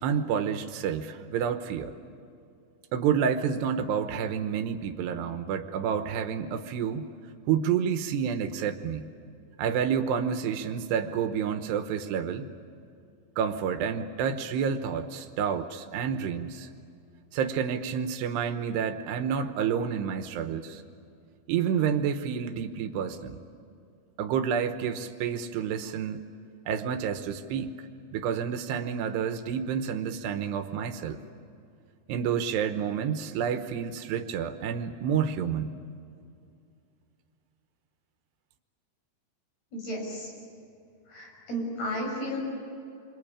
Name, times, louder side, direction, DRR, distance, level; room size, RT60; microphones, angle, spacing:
voice 1, 0.0-2.0 2.9-7.1 7.5-9.1 9.6-12.5 13.4-16.7 17.3-20.8 21.5-23.4 24.2-26.2 26.7-27.7 28.1-31.2 32.1-35.8, right 7 dB, 90° right, 8 dB, 3.2 m, -29 dB
voice 2, 39.7-40.3 41.1-42.4, equal, 70° left, 0 dB, 8.3 m, -33 dB
27.5 x 24.5 x 8.7 m, 2.5 s
omnidirectional pair, 4.7 m